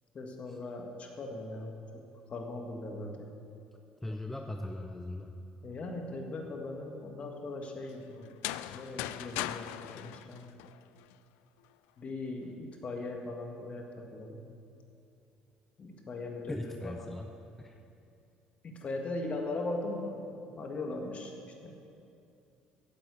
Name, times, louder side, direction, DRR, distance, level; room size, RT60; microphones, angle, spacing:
voice 1, 0.1-2.0 2.3-3.3 5.6-8.3 8.7-10.5 12.0-14.4 15.8-17.1 18.6-21.3 21.6-21.7, left 2 dB, 40° left, 2 dB, 1.8 m, -39 dB
voice 2, 4.0-5.3 16.5-17.3 17.6-17.7, left 1 dB, 10° left, 4 dB, 0.6 m, -39 dB
sound 1, 8.2-11.1, left 14 dB, 85° left, 0.3 m, -39 dB
8.5 x 7.8 x 8.5 m, 2.6 s
supercardioid pair, 90°, 3 cm